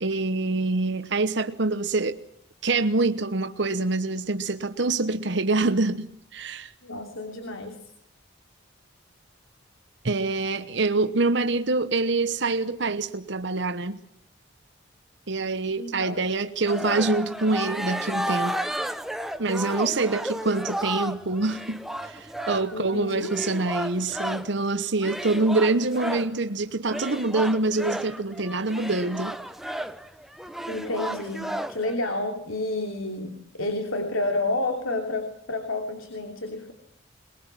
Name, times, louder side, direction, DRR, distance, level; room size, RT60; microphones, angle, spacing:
voice 1, 0.0-2.2 2.6-6.7 10.0-14.0 15.3-18.6 19.4-29.4, right 3 dB, 60° right, 1.1 m, -25 dB
voice 2, 6.8-7.8 15.8-16.2 22.7-23.3 30.7-36.7, left 2 dB, 90° left, 3.1 m, -30 dB
sound 1, 16.7-24.6 25.0-26.4 26.9-31.9, equal, ahead, 0.9 m, -33 dB
23.0 x 21.5 x 7.4 m
head